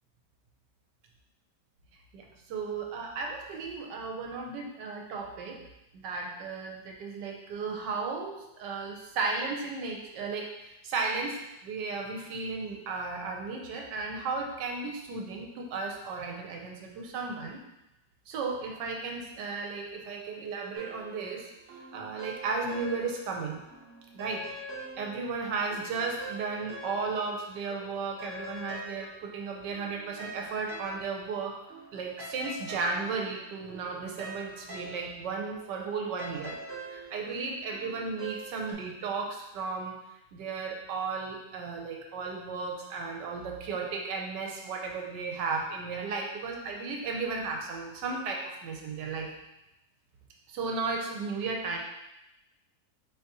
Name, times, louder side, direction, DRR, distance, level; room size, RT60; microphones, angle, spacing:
voice 1, 2.1-5.6 5.9-17.6 18.3-21.5 21.9-23.6 24.1-24.5 25.0-31.6 31.9-36.6 36.9-39.9 40.3-49.3 50.5-51.8, right 4 dB, 85° right, 1 dB, 1.3 m, -34 dB
sound 1, 20.7-23.4 23.7-27.4 27.7-38.7, right 1 dB, 40° right, 0.9 m, -45 dB
4.2 x 3.5 x 2.9 m, 0.91 s
omnidirectional pair, 1.8 m